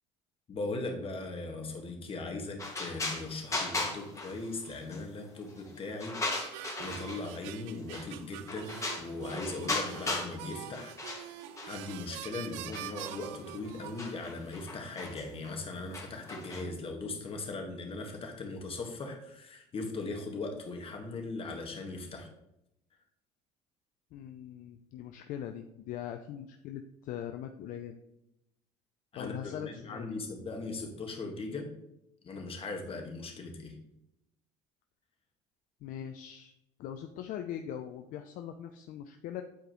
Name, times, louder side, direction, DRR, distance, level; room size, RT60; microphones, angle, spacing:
voice 1, 0.5-10.9 11.2-11.3 11.6-22.3 29.1-31.7 32.2-33.8, left 3 dB, 40° left, 2 dB, 1.6 m, -39 dB
sound 1, 2.6-5.0 5.4-7.4 7.9-8.2 8.5-10.4 10.7-12.0 12.6-16.6, left 2 dB, 20° left, 1.9 m, -37 dB
sound 2, 6.3-14.3, right 12 dB, 75° right, 0.4 m, -45 dB
voice 2, 24.1-28.0 29.2-30.1 35.8-36.5 36.8-39.4, left 10 dB, 60° left, 6 dB, 0.5 m, -41 dB
8.3 x 4.8 x 3.0 m, 0.84 s
hypercardioid pair, 70°, 15 cm